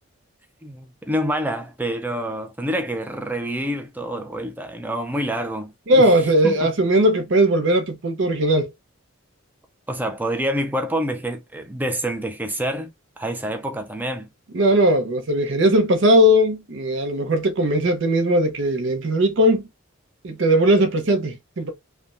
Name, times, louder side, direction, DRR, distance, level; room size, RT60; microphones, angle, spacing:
voice 1, 0.6-6.7 9.9-14.3, right 1 dB, 10° right, 0.4 m, -27 dB
voice 2, 5.9-8.7 14.5-19.6 20.2-21.7, equal, 60° right, 0.6 m, -18 dB
3.3 x 2.1 x 2.5 m
head